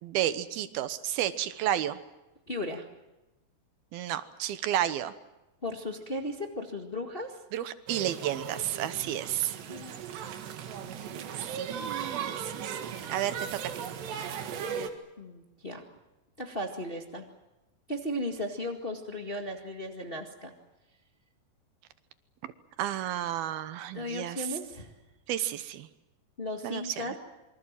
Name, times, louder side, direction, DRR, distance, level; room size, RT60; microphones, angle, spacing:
voice 1, 0.0-2.0 3.9-5.1 7.5-9.6 11.4-13.9 22.4-22.5 22.8-24.6 25.3-25.9 26.6-27.2, right 12 dB, 75° right, 12 dB, 2.8 m, -32 dB
voice 2, 2.5-2.8 5.6-7.4 9.6-10.1 15.2-15.8 16.4-17.2 17.9-20.5 23.9-24.9 26.4-27.1, left 1 dB, 50° left, 3 dB, 0.6 m, -36 dB
sound 1, 7.9-14.9, right 7 dB, 90° right, 4.0 m, -37 dB
27.0 x 24.0 x 7.5 m, 0.99 s
omnidirectional pair, 4.7 m